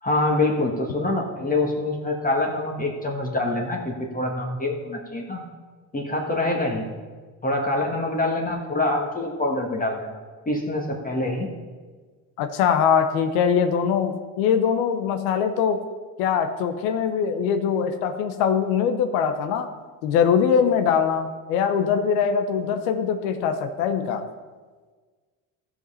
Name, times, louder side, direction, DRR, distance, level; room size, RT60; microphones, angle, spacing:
voice 1, 0.0-5.4 5.9-6.9 7.4-10.2 10.4-11.5, left 2 dB, 20° left, 0 dB, 1.6 m, -25 dB
voice 2, 12.4-15.8 16.2-19.7 20.0-24.2, left 7 dB, 85° left, 8 dB, 0.9 m, -22 dB
14.5 x 5.4 x 5.6 m, 1.4 s
supercardioid pair, 85°, 40 cm